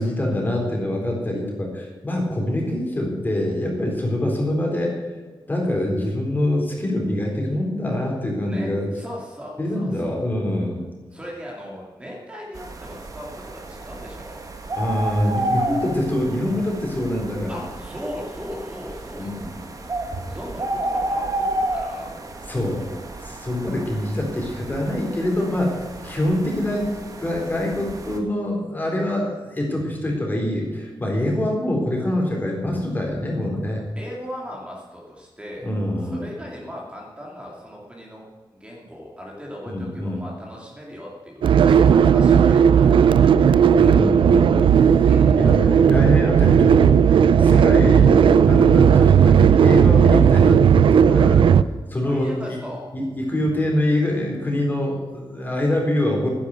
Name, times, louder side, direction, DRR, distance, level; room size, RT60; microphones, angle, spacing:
voice 1, 0.0-5.0 5.5-8.9 9.6-10.8 14.8-17.6 19.2-19.6 22.5-33.8 35.6-36.2 39.7-40.2 43.7-45.1 45.4-51.4 51.9-52.6 52.9-56.3, left 1 dB, 20° left, 0 dB, 4.0 m, -24 dB
voice 2, 8.3-10.1 11.1-14.4 17.5-19.4 20.1-22.2 33.9-35.7 36.0-38.2 38.5-43.2 45.1-45.4 52.0-52.9, equal, 15° right, -3 dB, 2.6 m, -38 dB
sound 1, 12.5-28.2, right 1 dB, 40° right, 1.8 m, -31 dB
sound 2, 41.4-51.6, right 8 dB, 85° right, 0.4 m, -14 dB
11.5 x 10.5 x 7.7 m, 1.3 s
wide cardioid pair, 135°, 8 cm